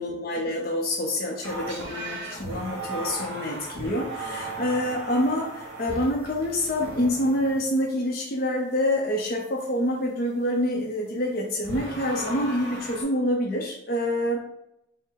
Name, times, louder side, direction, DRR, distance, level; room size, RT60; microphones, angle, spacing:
voice 1, 0.0-14.4, left 1 dB, 50° left, -1 dB, 0.5 m, -27 dB
sound 1, 1.4-7.7 11.6-13.0, right 2 dB, 70° right, 1.2 m, -36 dB
5.2 x 2.0 x 3.9 m, 0.83 s
head